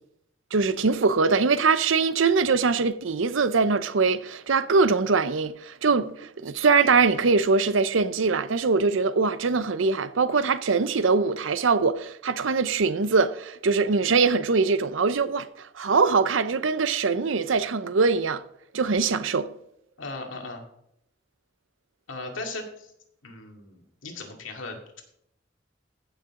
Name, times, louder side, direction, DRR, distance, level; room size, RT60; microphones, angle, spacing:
voice 1, 0.5-18.4 18.7-19.5, right 4 dB, 80° right, 0.7 m, -22 dB
voice 2, 20.0-20.6 22.1-22.9 23.2-25.0, left 2 dB, 85° left, 2.2 m, -37 dB
15.5 x 6.8 x 3.7 m
head